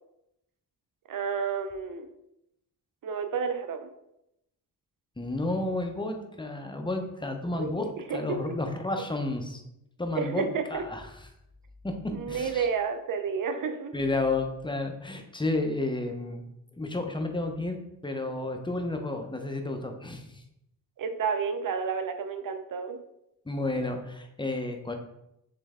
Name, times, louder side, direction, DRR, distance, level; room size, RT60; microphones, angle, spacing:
voice 1, 1.1-2.1 3.0-3.9 7.5-8.2 8.5-8.6 10.2-10.8 12.1-13.9 21.0-23.0, right 6 dB, 50° right, 8 dB, 0.6 m, -31 dB
voice 2, 5.2-9.6 10.0-10.4 10.7-11.1 11.8-11.9 12.3-12.7 13.9-16.5 16.8-20.4 23.5-24.9, left 2 dB, 10° left, 5 dB, 0.6 m, -31 dB
3.3 x 3.1 x 3.5 m, 0.83 s
cardioid pair, 55°, 42 cm